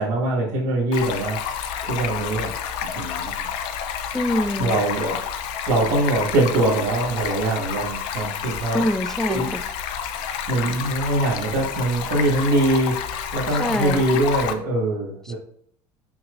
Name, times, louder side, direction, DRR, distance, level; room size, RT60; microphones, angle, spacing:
voice 1, 0.0-1.4 1.8-2.5 3.0-3.5 4.6-5.2 5.7-8.8 9.3-9.5 10.5-13.0 13.3-15.3, right 2 dB, 80° right, -5 dB, 1.9 m, -23 dB
Stream, 0.9-14.5, left 8 dB, 70° left, 0.7 m, -29 dB
voice 2, 4.1-4.8 8.7-9.6 13.6-14.1, left 1 dB, 5° left, 10 dB, 0.4 m, -24 dB
6.1 x 5.9 x 2.6 m, 0.65 s
cardioid pair, 130°, 9 cm